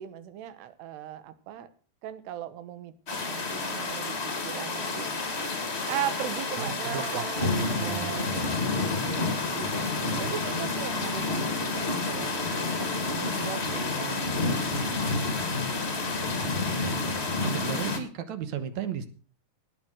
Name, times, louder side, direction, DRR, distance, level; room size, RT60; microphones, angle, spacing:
voice 1, 0.0-1.7 2.0-5.1 5.9-7.5 7.8-8.5 8.8-9.7 10.2-12.4 13.1-15.2, right 11 dB, 85° right, 13 dB, 3.2 m, -38 dB
sound 1, 3.1-18.0, left 3 dB, 30° left, 1.1 m, -29 dB
voice 2, 6.6-8.6 10.0-10.3 16.5-19.1, right 7 dB, 65° right, 11 dB, 1.9 m, -36 dB
18.5 x 7.1 x 6.3 m, 0.39 s
omnidirectional pair, 4.7 m